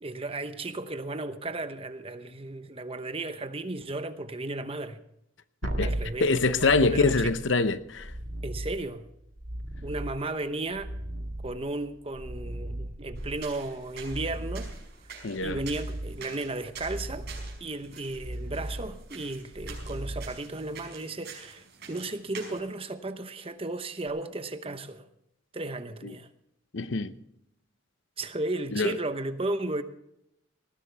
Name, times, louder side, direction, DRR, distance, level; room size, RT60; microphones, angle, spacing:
voice 1, 0.0-5.0 5.8-7.2 8.4-9.0 9.8-10.9 11.4-14.7 15.4-17.3 17.6-25.1 25.5-26.3 28.2-29.8, right 2 dB, 30° right, 0.9 m, -34 dB
voice 2, 5.6-5.9 6.2-8.1 15.2-15.6 26.0-26.1 26.7-27.1 28.7-29.0, left 3 dB, 65° left, 0.8 m, -25 dB
sound 1, 5.6-20.9 24.1-24.2, right 1 dB, 70° right, 1.9 m, -37 dB
sound 2, 13.1-22.6, right 6 dB, 55° right, 5.5 m, -48 dB
19.5 x 15.0 x 3.4 m
head